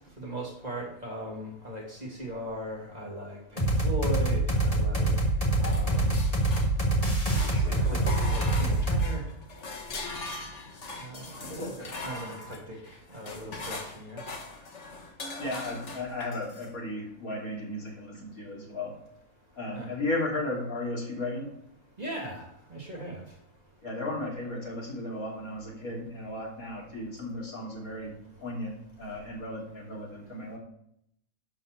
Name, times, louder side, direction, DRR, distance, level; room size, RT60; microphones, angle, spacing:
voice 1, 0.2-5.1 5.6-6.2 7.6-8.0 8.2-9.2 11.0-12.8 13.1-14.2 19.7-19.9 22.0-23.2, right 1 dB, 30° right, -2 dB, 2.8 m, -38 dB
sound 1, 3.6-9.1, right 2 dB, 25° left, 2.3 m, -25 dB
sound 2, 5.6-7.0 7.3-16.7, left 3 dB, 55° left, 1.8 m, -40 dB
voice 2, 15.4-19.0 19.6-21.5 23.8-28.1 28.4-30.6, left 2 dB, 85° left, -3 dB, 3.7 m, -35 dB
11.0 x 5.5 x 6.8 m, 0.72 s
omnidirectional pair, 1.5 m